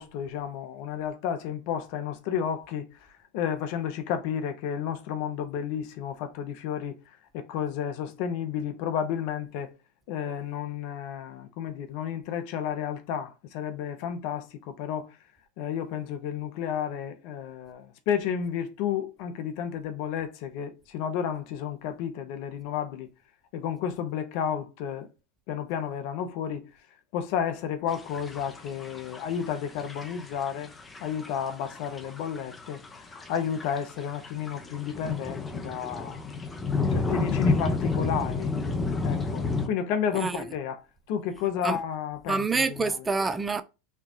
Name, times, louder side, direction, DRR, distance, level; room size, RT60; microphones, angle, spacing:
voice 1, 0.0-2.9 3.3-6.9 7.3-9.7 10.1-15.1 15.6-23.1 23.5-25.1 25.5-26.7 27.1-30.7 31.0-36.2 36.9-38.5 39.0-40.8 41.1-43.0, left 8 dB, 60° left, 0.7 m, -32 dB
sound 1, 27.9-39.7, left 4 dB, 20° left, 0.7 m, -31 dB
voice 2, 40.1-40.5 41.6-41.8 42.3-43.6, right 4 dB, 20° right, 0.4 m, -27 dB
4.3 x 2.3 x 2.7 m
hypercardioid pair, 90°, 0 cm